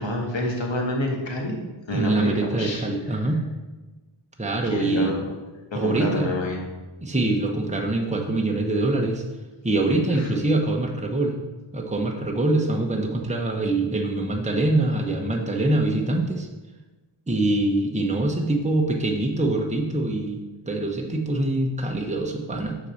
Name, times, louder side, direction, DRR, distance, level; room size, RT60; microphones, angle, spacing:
voice 1, 0.0-1.5 1.9-2.8 3.1-3.2 4.6-5.2 5.7-6.6 10.1-10.3, left 1 dB, 65° left, 0 dB, 1.7 m, -28 dB
voice 2, 1.9-3.4 4.4-5.1 5.7-6.3 7.0-9.2 9.6-11.4 11.7-16.5 17.3-22.8, right 2 dB, 15° right, 1 dB, 1.0 m, -24 dB
6.4 x 4.1 x 6.4 m, 1.2 s
wide cardioid pair, 50°, 48 cm